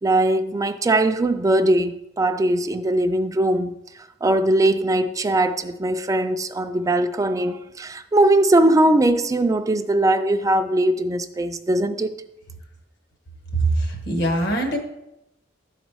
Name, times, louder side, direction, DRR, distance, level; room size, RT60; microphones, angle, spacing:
voice 1, 0.0-3.8 4.2-12.2, right 1 dB, 15° right, 0.3 m, -20 dB
voice 2, 13.5-14.8, right 2 dB, 60° left, 1.4 m, -22 dB
11.5 x 4.1 x 4.7 m
head